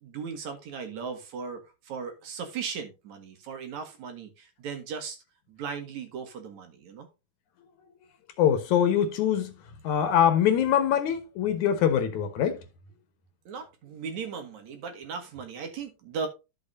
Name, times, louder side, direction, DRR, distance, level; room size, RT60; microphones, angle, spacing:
voice 1, 0.0-5.2 5.5-7.1 13.5-16.3, right 5 dB, 70° right, 3.0 m, -37 dB
voice 2, 8.4-9.5 9.8-12.6, left 9 dB, 75° left, 2.7 m, -23 dB
12.5 x 7.0 x 2.7 m
omnidirectional pair, 3.5 m